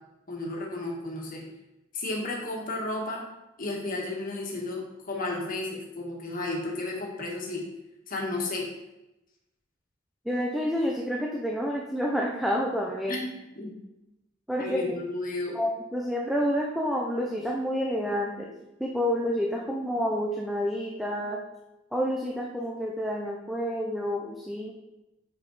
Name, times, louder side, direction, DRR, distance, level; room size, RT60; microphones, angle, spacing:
voice 1, 0.3-1.5 1.9-3.2 3.6-7.6 8.1-8.7 13.1-13.7 14.6-15.6, left 2 dB, 45° left, -1 dB, 1.8 m, -33 dB
voice 2, 10.2-13.2 14.5-14.8 15.5-18.5 18.8-21.4 21.9-24.7, equal, ahead, -1 dB, 0.6 m, -29 dB
6.7 x 6.4 x 4.2 m, 0.95 s
head